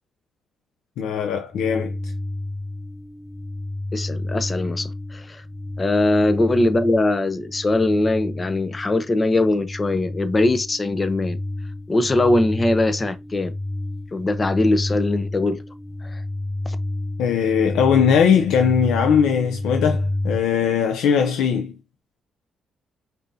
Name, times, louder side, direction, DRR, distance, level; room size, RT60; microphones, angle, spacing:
voice 1, 1.0-2.1 17.2-21.7, left 7 dB, 85° left, 0.5 m, -20 dB
sound 1, 1.5-20.4, left 2 dB, 10° left, 2.2 m, -30 dB
voice 2, 3.9-5.4 5.8-11.4 11.9-13.5 14.1-15.6 16.0-16.2 16.7-16.8, left 2 dB, 25° left, 0.7 m, -21 dB
5.3 x 2.6 x 2.7 m
cardioid pair, 90°, 0 cm